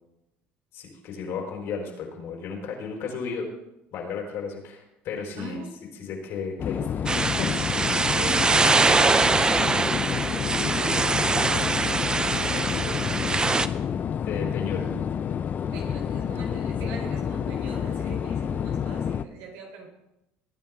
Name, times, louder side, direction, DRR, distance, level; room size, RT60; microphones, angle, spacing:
voice 1, 0.7-3.5 3.9-5.6 6.0-7.5 14.3-14.9, left 5 dB, 65° left, 0 dB, 4.5 m, -34 dB
voice 2, 5.4-5.8 8.2-13.5 15.7-19.9, right 3 dB, 85° right, 1 dB, 4.0 m, -40 dB
sound 1, 6.6-19.2, left 8 dB, 40° left, 0.6 m, -29 dB
sound 2, 7.1-13.7, right 3 dB, 20° right, 0.6 m, -23 dB
sound 3, 7.5-12.3, right 4 dB, 50° right, 3.6 m, -49 dB
20.0 x 9.6 x 3.7 m, 0.89 s
supercardioid pair, 105°, 4 cm